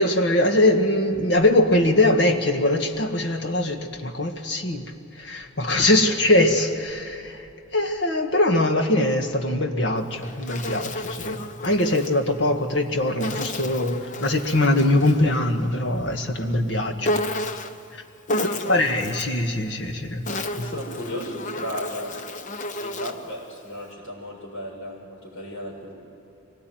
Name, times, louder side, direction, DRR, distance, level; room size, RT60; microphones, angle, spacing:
voice 1, 0.0-7.5 7.7-17.1 18.7-20.2 20.6-20.7, left 1 dB, 60° left, 5 dB, 1.9 m, -22 dB
Insect, 10.0-12.1 13.2-15.3 17.0-17.8 18.3-19.4 20.0-23.3, left 1 dB, 40° left, 0.9 m, -31 dB
voice 2, 18.3-18.8 20.5-22.2 22.7-25.9, equal, 85° left, -3 dB, 7.1 m, -35 dB
24.0 x 18.0 x 9.3 m, 2.9 s
head